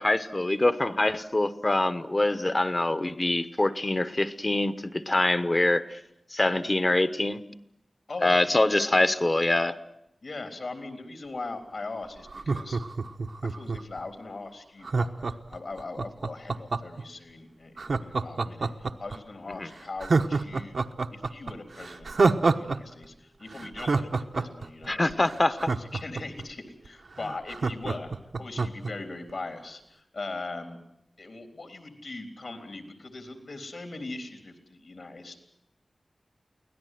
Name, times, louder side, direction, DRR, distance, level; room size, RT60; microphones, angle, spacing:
voice 1, 0.0-6.0 6.3-7.4 8.2-9.8 19.6-19.7 24.9-25.7, left 2 dB, 35° left, 12 dB, 1.0 m, -24 dB
voice 2, 8.1-8.6 10.2-12.8 13.4-28.1 28.4-30.8 31.2-35.4, left 3 dB, 70° left, 7 dB, 3.7 m, -40 dB
Laughter, 12.3-14.0 14.8-17.0 17.8-19.2 19.5-19.6 20.0-22.8 23.0-23.1 23.5-26.4 26.9-27.0 27.2-28.9 29.3-29.4, right 4 dB, 75° right, 1.1 m, -27 dB
24.0 x 17.5 x 9.3 m, 0.81 s
wide cardioid pair, 85°, 0 cm